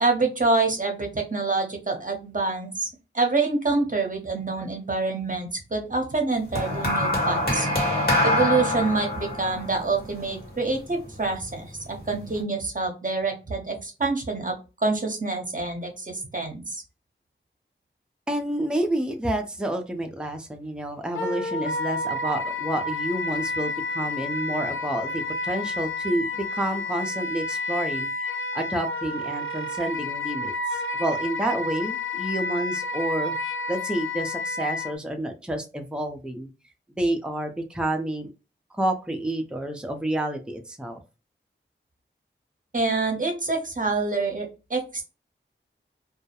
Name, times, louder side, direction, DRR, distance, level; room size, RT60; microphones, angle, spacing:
voice 1, 0.0-2.9 3.1-7.7 8.2-16.8 42.7-45.0, right 3 dB, 40° right, 2 dB, 0.7 m, -26 dB
sound 1, 6.6-11.0 11.9-12.2, left 1 dB, 50° left, 1.2 m, -25 dB
voice 2, 18.3-33.3 33.7-36.5 37.0-38.3 38.7-41.0, right 1 dB, 5° right, 4 dB, 0.5 m, -29 dB
Wind instrument woodwind instrument, 21.1-34.9, left 2 dB, 80° left, 0.5 m, -30 dB
2.3 x 2.1 x 2.8 m, 0.30 s
wide cardioid pair, 60°, 20 cm